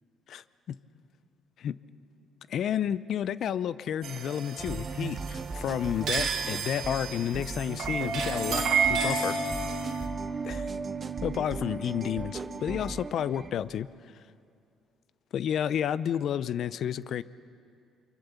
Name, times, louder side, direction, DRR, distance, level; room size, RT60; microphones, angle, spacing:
voice 1, 0.3-0.8 1.6-1.8 2.5-9.4 10.4-10.7 11.2-13.9 15.3-17.2, left 9 dB, 65° left, 17 dB, 0.6 m, -31 dB
sound 1, 4.0-10.1, right 5 dB, 65° right, 2.2 m, -31 dB
sound 2, 4.6-13.5, right 4 dB, 35° right, 1.4 m, -36 dB
25.0 x 24.0 x 7.1 m, 2.4 s
supercardioid pair, 75°, 0 cm